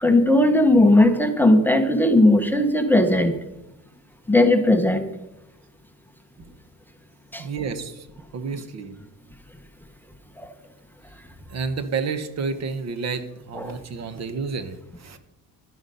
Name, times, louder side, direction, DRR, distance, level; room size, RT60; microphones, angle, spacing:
voice 1, 0.0-3.4 4.3-5.1 7.3-7.4 13.5-13.8, left 1 dB, 5° left, 7 dB, 0.8 m, -17 dB
voice 2, 7.4-8.1 8.3-8.9 11.5-15.2, right 5 dB, 45° right, 12 dB, 0.9 m, -30 dB
11.5 x 9.7 x 5.3 m, 0.93 s
cardioid pair, 145°, 37 cm